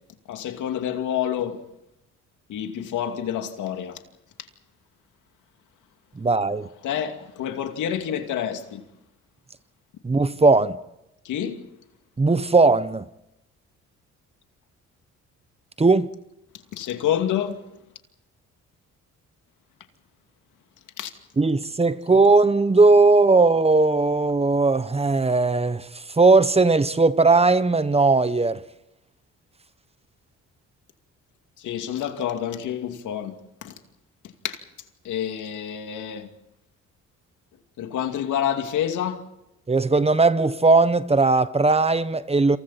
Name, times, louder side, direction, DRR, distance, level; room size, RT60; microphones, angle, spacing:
voice 1, 0.3-1.6 2.5-4.0 6.8-8.8 11.2-11.7 16.7-17.6 21.0-21.1 31.6-33.3 33.6-33.8 34.4-34.6 35.0-36.3 37.8-39.2, left 9 dB, 85° left, 2.5 m, -28 dB
voice 2, 6.2-6.7 10.0-10.8 12.2-13.1 15.8-16.1 21.4-25.8 26.2-28.6 39.7-42.6, right 3 dB, 20° right, 1.1 m, -18 dB
29.0 x 27.5 x 4.3 m
cardioid pair, 90°, 30 cm